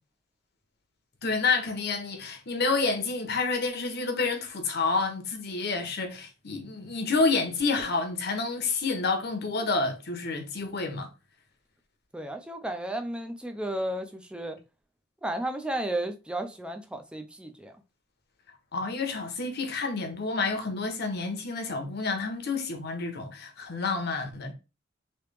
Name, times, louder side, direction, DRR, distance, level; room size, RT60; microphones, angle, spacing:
voice 1, 1.2-11.1 18.7-24.5, left 4 dB, 55° left, 0.8 m, -29 dB
voice 2, 12.1-14.6 15.2-17.7, right 1 dB, 5° right, 0.4 m, -33 dB
3.2 x 2.9 x 3.3 m
head